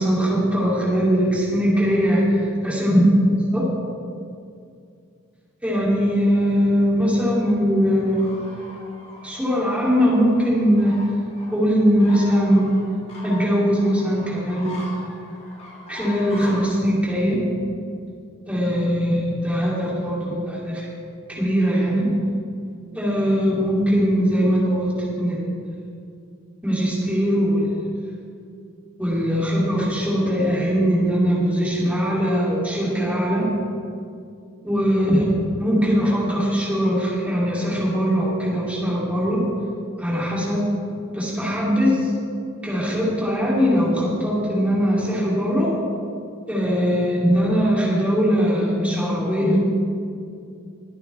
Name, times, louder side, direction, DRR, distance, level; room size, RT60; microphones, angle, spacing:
voice 1, 0.0-3.0 3.5-3.7 5.6-8.3 9.2-11.0 11.5-12.8 13.2-15.0 15.9-17.5 18.5-20.9 21.3-22.1 22.9-25.5 26.6-27.7 29.0-33.5 34.6-35.2 35.6-39.4 40.0-40.7 41.1-42.1 42.6-45.7 46.5-49.6, equal, 5° right, -6 dB, 3.0 m, -21 dB
sound 1, 7.7-16.7, left 1 dB, 30° left, 2.3 m, -41 dB
22.0 x 9.2 x 3.5 m, 2.4 s
head